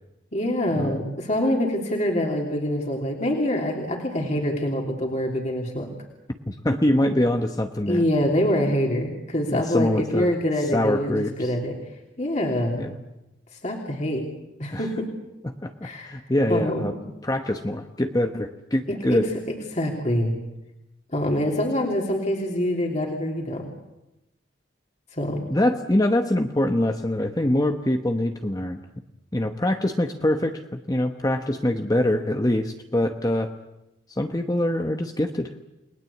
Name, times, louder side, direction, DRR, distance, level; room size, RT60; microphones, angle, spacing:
voice 1, 0.3-5.9 7.9-11.8 12.2-12.9 13.6-14.2 14.6-15.1 15.8-16.2 16.5-17.0 18.9-19.2 19.7-20.4 21.1-23.6 25.1-25.4, left 1 dB, 40° left, 0 dB, 3.2 m, -25 dB
voice 2, 6.5-8.0 9.5-10.3 10.7-11.5 12.7-12.9 14.7-14.8 15.4-16.9 17.2-19.3 25.5-28.8 29.3-33.5 34.2-35.5, left 1 dB, 20° left, 5 dB, 1.0 m, -24 dB
29.5 x 20.0 x 8.4 m, 0.95 s
head